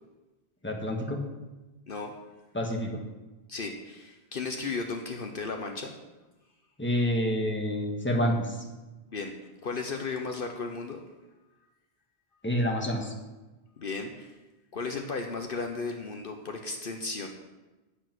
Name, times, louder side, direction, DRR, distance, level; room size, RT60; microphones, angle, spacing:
voice 1, 0.6-1.2 2.5-3.0 6.8-8.6 12.4-13.1, equal, 10° left, 1 dB, 1.6 m, -28 dB
voice 2, 3.5-5.9 9.1-9.3 9.6-11.0 13.8-14.4 14.7-17.3, left 4 dB, 60° left, 4 dB, 1.1 m, -35 dB
10.0 x 8.3 x 6.1 m, 1.1 s
omnidirectional pair, 1.1 m